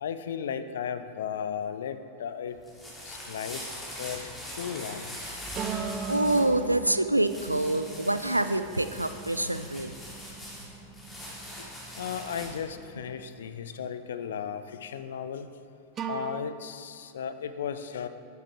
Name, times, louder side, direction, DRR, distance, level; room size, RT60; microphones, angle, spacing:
voice 1, 0.0-2.6 3.1-3.6 4.0-4.3 4.6-5.4 12.0-15.5 16.1-18.1, left 8 dB, 60° left, 11 dB, 0.6 m, -35 dB
sound 1, 2.5-12.7, left 1 dB, 15° left, 2.8 m, -42 dB
sound 2, 5.6-12.5 16.0-16.4, right 6 dB, 25° right, 0.6 m, -39 dB
voice 2, 6.1-9.9, right 1 dB, 85° right, 11 dB, 0.4 m, -26 dB
13.0 x 9.3 x 3.5 m, 2.5 s
figure-of-eight pair, 90°, 0 cm